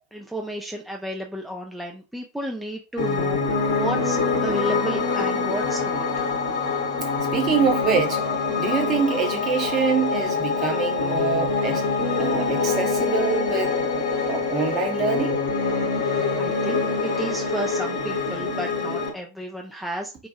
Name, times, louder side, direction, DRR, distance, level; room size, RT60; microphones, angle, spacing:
voice 1, 0.1-6.3 16.0-20.3, right 1 dB, ahead, 0.4 m, -32 dB
Piano, 3.0-19.1, left 4 dB, 55° left, 0.8 m, -25 dB
voice 2, 7.3-8.2 8.6-11.8 12.2-13.8 14.3-15.4, right 6 dB, 30° right, 0.8 m, -25 dB
2.6 x 2.3 x 2.6 m
figure-of-eight pair, 90°, 0 cm